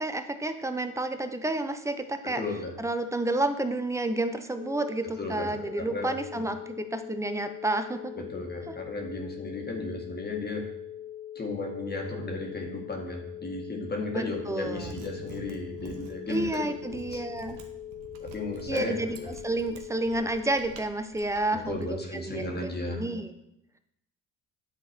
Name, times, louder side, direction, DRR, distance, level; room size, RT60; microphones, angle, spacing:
voice 1, 0.0-2.4 2.8-8.1 14.1-14.9 16.3-17.6 18.7-23.3, right 2 dB, 10° right, 8 dB, 0.6 m, -30 dB
voice 2, 2.2-2.8 5.2-6.4 8.2-10.7 11.4-17.2 18.2-19.3 21.5-23.1, left 2 dB, 25° left, 1 dB, 1.8 m, -35 dB
sound 1, 4.5-20.6, left 11 dB, 50° right, 1.6 m, -42 dB
Mechanisms, 14.7-21.8, right 6 dB, 70° right, 1.1 m, -47 dB
10.0 x 3.8 x 4.5 m, 0.82 s
supercardioid pair, 75°, 40 cm